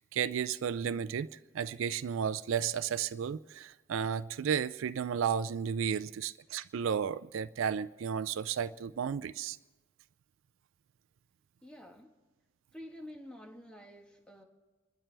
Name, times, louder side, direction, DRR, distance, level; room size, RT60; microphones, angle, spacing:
voice 1, 0.0-9.6, right 7 dB, 75° right, 0.4 m, -33 dB
voice 2, 11.6-12.1 12.7-14.4, left 1 dB, 5° left, 1.3 m, -49 dB
30.0 x 12.0 x 3.4 m
head